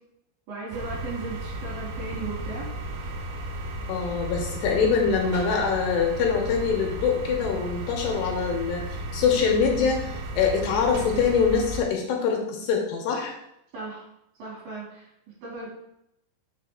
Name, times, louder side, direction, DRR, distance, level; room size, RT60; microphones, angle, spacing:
voice 1, 0.5-2.7 13.7-14.0 14.4-15.1 15.4-15.7, right 3 dB, 55° right, -5 dB, 4.1 m, -36 dB
sound 1, 0.7-11.8, right 1 dB, 75° right, 2.9 m, -34 dB
voice 2, 3.9-8.8 9.1-13.4, left 6 dB, 75° left, 1 dB, 3.1 m, -24 dB
7.3 x 6.5 x 3.6 m, 0.79 s
omnidirectional pair, 5.1 m